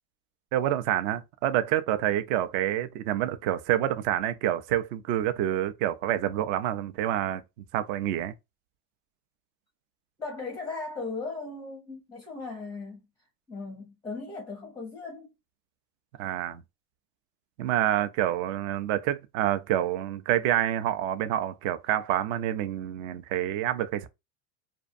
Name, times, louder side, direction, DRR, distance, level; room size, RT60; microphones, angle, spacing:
voice 1, 0.5-7.4 7.7-8.3 16.2-16.6 17.6-24.1, right 12 dB, 55° right, 0.5 m, -27 dB
voice 2, 10.2-15.3, left 3 dB, 5° left, 0.5 m, -38 dB
2.5 x 2.2 x 2.5 m
supercardioid pair, 120°, 50 cm